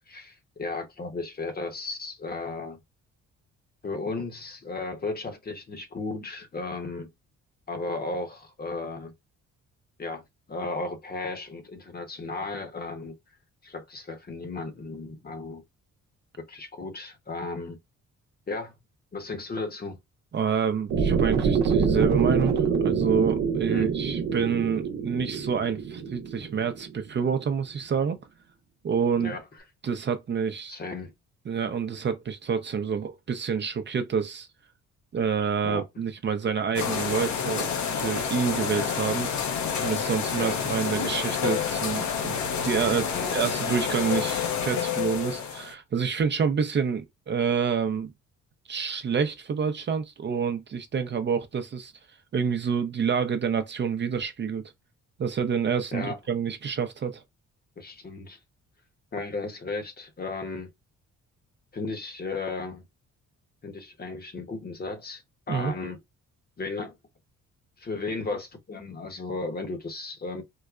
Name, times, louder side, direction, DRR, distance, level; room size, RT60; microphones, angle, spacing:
voice 1, 0.1-2.8 3.8-7.1 7.7-9.1 10.0-10.2 10.5-13.1 13.6-15.6 16.4-17.8 18.5-18.7 19.1-20.0 23.7-23.9 29.2-29.4 30.7-31.1 35.6-35.8 40.4-40.6 41.0-41.2 43.1-43.6 55.9-56.2 57.8-58.4 59.1-60.7 61.7-62.8 63.6-65.2 65.5-66.0 66.6-66.9 67.8-70.4, left 3 dB, 30° left, 0.9 m, -34 dB
voice 2, 20.3-28.2 28.8-29.3 29.8-30.8 31.5-34.5 35.1-39.3 39.8-48.1 48.7-51.9 52.3-54.6 55.2-57.2 65.5-65.7, right 6 dB, 35° right, 0.6 m, -28 dB
sound 1, 20.9-27.0, right 6 dB, 70° right, 0.7 m, -25 dB
sound 2, 36.8-45.7, left 7 dB, 70° left, 0.8 m, -29 dB
4.6 x 2.1 x 2.4 m
cardioid pair, 90°, 30 cm